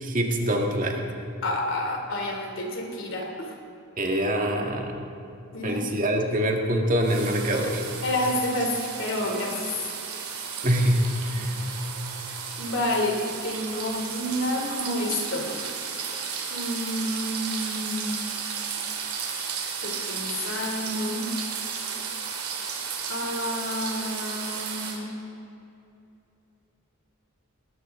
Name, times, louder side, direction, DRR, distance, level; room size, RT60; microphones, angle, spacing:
voice 1, 0.0-1.0 4.0-5.0 5.6-7.8 10.6-11.5, equal, 40° right, 2 dB, 1.8 m, -24 dB
voice 2, 1.4-3.5 5.5-5.8 8.0-9.7 12.6-15.7 16.5-18.2 19.8-21.3 23.1-25.1, left 1 dB, 60° left, 1 dB, 2.9 m, -29 dB
sound 1, 7.0-25.0, right 6 dB, 85° right, 2.7 m, -34 dB
20.0 x 19.0 x 3.7 m, 2.7 s
head